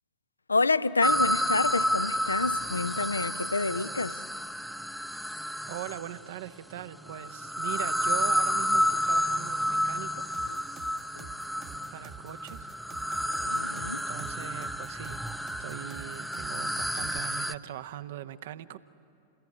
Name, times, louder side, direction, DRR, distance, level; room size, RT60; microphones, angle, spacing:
voice 1, 0.5-4.2 10.5-10.6 11.2-11.3 13.4-14.0, left 3 dB, 80° left, 0.5 m, -28 dB
sound 1, 1.0-6.2 7.1-17.5, equal, ahead, 0.6 m, -30 dB
voice 2, 5.6-10.2 11.9-12.7 13.8-18.8, right 13 dB, 55° right, 0.8 m, -41 dB
sound 2, 10.3-17.2, right 8 dB, 35° right, 1.0 m, -47 dB
28.0 x 21.0 x 10.0 m
figure-of-eight pair, 90°, 0 cm